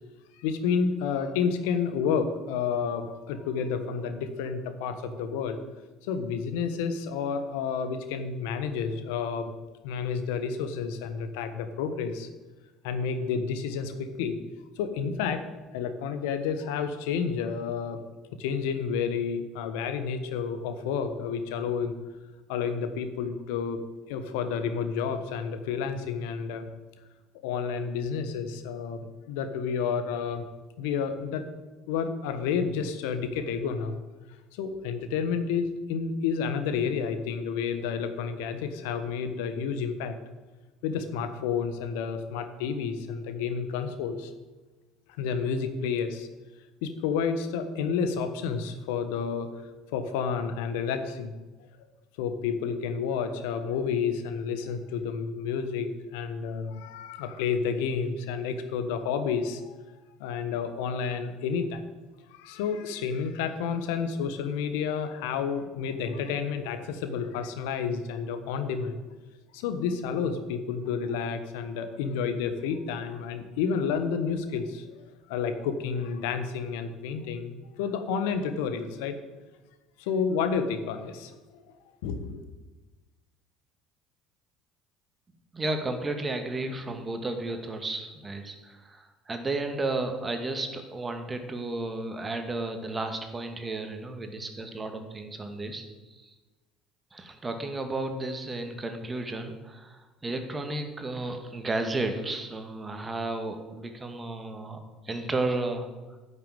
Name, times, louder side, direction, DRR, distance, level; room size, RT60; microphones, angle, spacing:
voice 1, 0.4-5.6 6.0-9.5 9.8-12.3 12.8-14.4 14.8-15.4 15.7-18.0 18.4-21.9 22.5-23.8 24.1-26.7 27.4-29.0 29.3-30.5 30.8-31.5 31.9-34.0 34.5-40.2 40.8-44.3 45.2-46.3 46.8-51.3 52.2-59.8 60.2-61.8 62.3-68.9 69.5-79.2 80.0-81.8 82.0-82.4, left 6 dB, 75° left, 9 dB, 1.2 m, -30 dB
voice 2, 85.5-96.3 97.1-104.8 105.0-106.2, right 2 dB, 25° right, 6 dB, 2.0 m, -33 dB
10.0 x 6.8 x 9.0 m, 1.2 s
hypercardioid pair, 65°, 0 cm